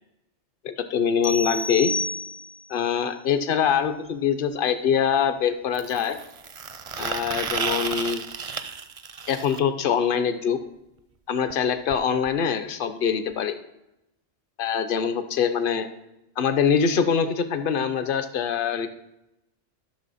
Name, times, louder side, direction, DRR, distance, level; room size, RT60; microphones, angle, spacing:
voice 1, 0.6-1.9 2.7-6.2 7.0-8.2 9.3-10.6 11.3-13.6 14.6-15.9 16.4-18.9, left 7 dB, 50° left, 10 dB, 0.9 m, -24 dB
sound 1, 1.2-2.8, left 2 dB, 85° left, 0.3 m, -30 dB
sound 2, 3.7-3.8 5.7-9.6 11.5-11.6 11.9-12.0 12.3-12.4 13.3-13.4, right 6 dB, 45° right, 0.4 m, -32 dB
13.0 x 6.2 x 4.1 m, 0.90 s
omnidirectional pair, 1.2 m